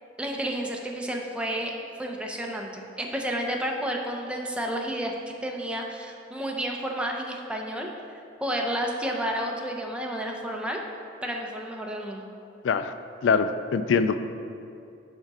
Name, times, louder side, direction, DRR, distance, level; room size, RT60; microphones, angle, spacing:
voice 1, 0.2-5.1 5.4-7.9 8.4-10.8 11.2-12.3, right 1 dB, 5° right, 0 dB, 0.6 m, -31 dB
voice 2, 13.2-14.2, left 5 dB, 75° left, 10 dB, 0.4 m, -23 dB
6.5 x 5.1 x 4.8 m, 2.6 s
head